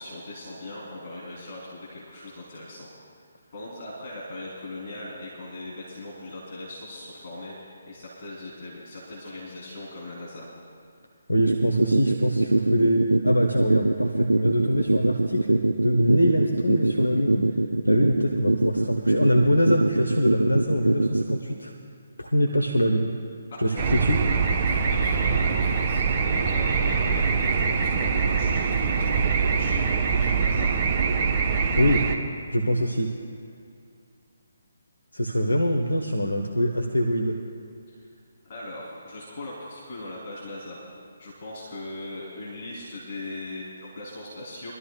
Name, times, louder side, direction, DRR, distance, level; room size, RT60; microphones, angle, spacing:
voice 1, 0.0-2.9 3.5-10.5 23.5-23.9 24.6-30.7 37.9-38.0 38.5-40.8 41.2-44.7, left 2 dB, 40° left, -7 dB, 3.3 m, -39 dB
voice 2, 11.3-17.6 17.8-21.7 22.2-23.1 23.6-24.2 31.8-32.1 32.5-33.1 35.1-37.4, equal, 75° left, 2 dB, 1.0 m, -24 dB
sound 1, 11.4-21.4, right 2 dB, 80° right, 0.4 m, -22 dB
sound 2, 23.8-32.2, right 5 dB, 30° right, 1.0 m, -23 dB
24.5 x 12.5 x 2.3 m, 2.4 s
figure-of-eight pair, 140°, 0 cm